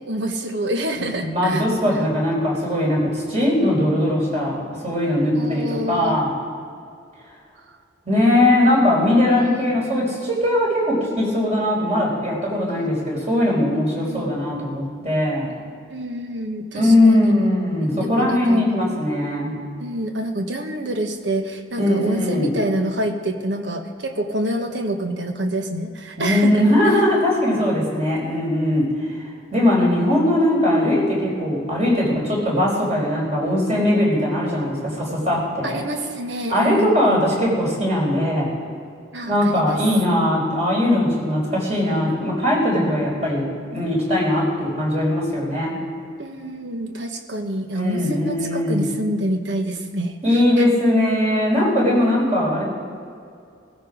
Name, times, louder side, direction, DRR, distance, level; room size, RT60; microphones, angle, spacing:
voice 1, 0.0-1.7 5.3-6.2 9.5-9.7 12.7-12.9 13.9-14.3 15.9-17.5 17.8-18.7 19.8-27.0 35.6-37.3 39.1-39.8 46.2-50.7, right 1 dB, 65° right, 5 dB, 1.3 m, -27 dB
voice 2, 0.9-6.3 8.1-15.5 16.7-19.5 21.8-22.5 26.2-28.9 29.5-35.9 36.5-38.5 39.3-43.5 43.7-45.8 47.7-48.8 50.2-52.7, left 1 dB, 35° right, -3 dB, 5.0 m, -20 dB
16.0 x 15.0 x 5.1 m, 2.4 s
head